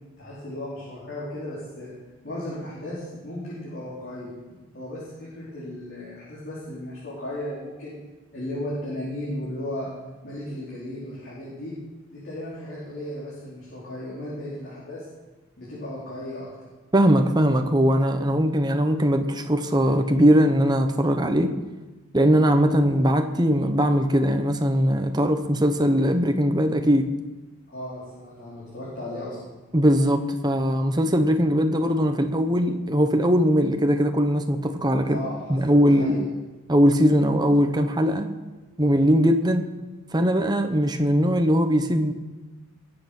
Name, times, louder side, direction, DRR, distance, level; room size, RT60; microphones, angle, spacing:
voice 1, 0.2-1.9 2.2-4.3 4.7-7.9 8.3-9.9 10.2-11.7 12.1-15.0 15.6-16.7 27.7-29.5 34.8-35.6 35.8-36.2, left 1 dB, 50° left, -8 dB, 4.4 m, -35 dB
voice 2, 16.9-21.5 22.1-27.1 29.7-35.2 35.5-36.2 36.7-38.3 38.8-39.7 40.1-42.1, equal, 20° right, 6 dB, 1.0 m, -20 dB
20.5 x 7.9 x 6.1 m, 1.2 s
head